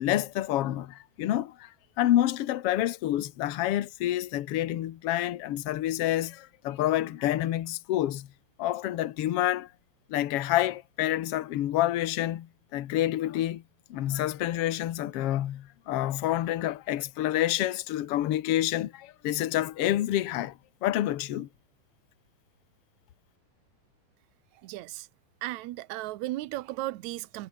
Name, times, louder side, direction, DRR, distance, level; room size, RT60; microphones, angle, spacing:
voice 1, 0.0-1.7 2.0-8.3 8.6-9.7 10.1-13.6 13.9-21.5, left 13 dB, 75° left, 1.3 m, -28 dB
voice 2, 24.6-25.1 25.4-27.5, right 17 dB, 75° right, 1.7 m, -35 dB
omnidirectional pair, 4.2 m